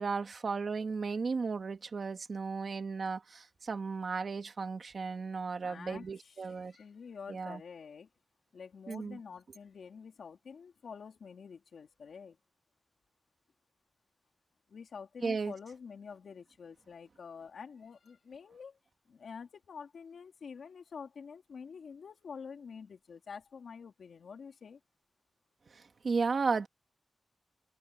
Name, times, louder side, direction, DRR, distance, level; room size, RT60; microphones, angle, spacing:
voice 1, 0.0-6.7 7.3-7.6 8.9-9.2 15.2-15.5 26.0-26.7, right 4 dB, 55° right, 2.4 m, -34 dB
voice 2, 5.6-8.1 8.5-12.4 14.7-18.8 19.1-24.8, left 6 dB, 90° left, 3.1 m, -48 dB
wide cardioid pair, 140°, 0 cm